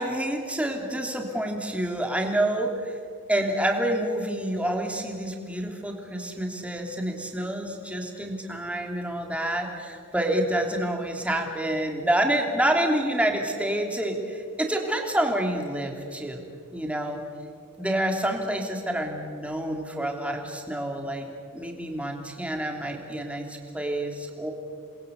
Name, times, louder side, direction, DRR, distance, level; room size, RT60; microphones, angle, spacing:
voice 1, 0.0-3.0 3.3-17.2 17.8-21.3 21.5-24.5, right 1 dB, 5° right, 2 dB, 3.2 m, -28 dB
29.0 x 22.0 x 8.3 m, 2.2 s
head